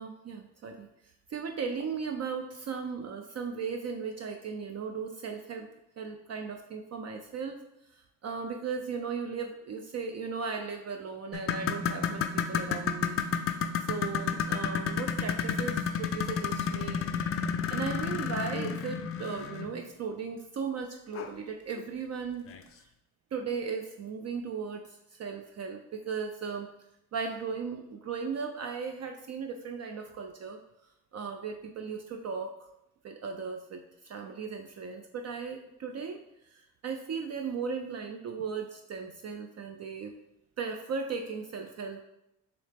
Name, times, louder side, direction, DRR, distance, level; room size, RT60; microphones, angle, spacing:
voice 1, 0.0-5.7 6.0-7.6 7.9-13.2 13.9-17.1 17.7-22.5 22.7-22.9 23.3-26.7 27.1-30.6 31.1-32.7 33.0-40.1 40.6-42.0, right 5 dB, 40° right, 4 dB, 0.4 m, -37 dB
sound 1, 11.3-19.8 21.1-21.3 21.8-21.9 22.5-22.6, left 7 dB, 35° left, 0.4 m, -31 dB
3.9 x 2.8 x 3.4 m, 0.84 s
supercardioid pair, 60°, 39 cm